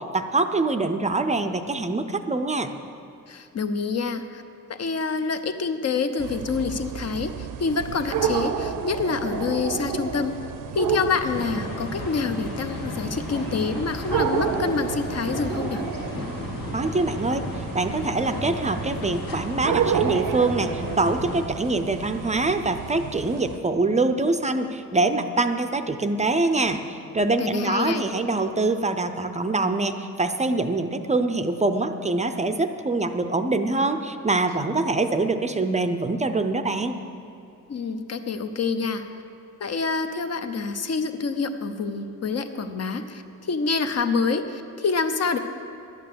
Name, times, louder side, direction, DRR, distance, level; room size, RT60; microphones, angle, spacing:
voice 1, 0.0-2.7 16.7-17.5 17.7-37.0, right 2 dB, 20° right, 8 dB, 0.5 m, -24 dB
voice 2, 3.3-4.4 4.7-10.4 10.7-15.8 27.4-28.0 37.7-39.0 39.6-45.4, left 4 dB, 50° left, 8 dB, 0.8 m, -27 dB
sound 1, 6.2-23.6, right 7 dB, 80° right, 0.7 m, -31 dB
sound 2, 11.2-21.4, left 2 dB, 90° left, 1.9 m, -34 dB
11.0 x 8.8 x 6.9 m, 2.7 s
cardioid pair, 115°, 33 cm